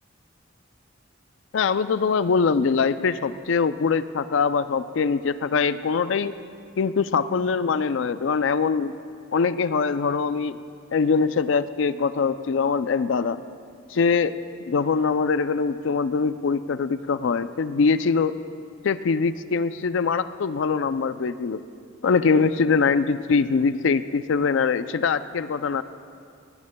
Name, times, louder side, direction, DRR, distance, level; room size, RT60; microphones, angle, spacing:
voice 1, 1.5-6.3 6.8-8.9 9.3-10.6 10.9-13.4 13.9-14.3 14.7-18.3 18.8-21.6 22.0-25.8, left 5 dB, 65° left, 13 dB, 0.4 m, -23 dB
18.0 x 18.0 x 2.2 m, 2.4 s
head